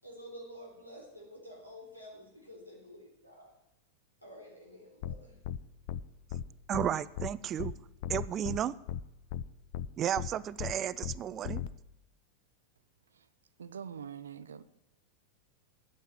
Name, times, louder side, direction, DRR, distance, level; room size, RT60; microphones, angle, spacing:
voice 1, 0.0-3.5 4.2-5.4, equal, 90° left, -1 dB, 3.7 m, -50 dB
sound 1, 5.0-5.1 5.4-5.6 5.9-6.0 6.3-6.4 6.7-6.9 7.2-7.3 7.6-7.7 8.0-8.6 8.9-9.0 9.3-9.4 9.7-9.9 10.2-10.3 10.6-10.7 11.0-11.1 11.4-11.7, left 10 dB, 45° left, 0.5 m, -36 dB
voice 2, 6.7-7.7 8.1-8.8 10.0-11.6, right 10 dB, 30° right, 18 dB, 0.4 m, -33 dB
voice 3, 13.6-14.6, right 8 dB, 70° right, 15 dB, 0.6 m, -44 dB
9.0 x 8.9 x 9.5 m, 0.90 s
figure-of-eight pair, 90°, 0 cm